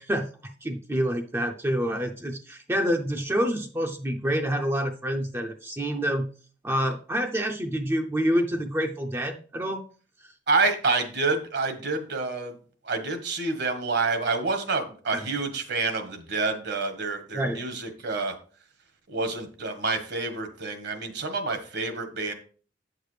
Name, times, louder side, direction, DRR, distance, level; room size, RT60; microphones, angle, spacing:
voice 1, 0.0-6.3 6.6-9.8 17.3-17.6, equal, 15° right, 2 dB, 0.5 m, -27 dB
voice 2, 10.5-12.5 12.8-18.3 19.1-22.3, right 3 dB, 65° right, 7 dB, 1.3 m, -28 dB
8.7 x 6.6 x 3.3 m, 0.42 s
head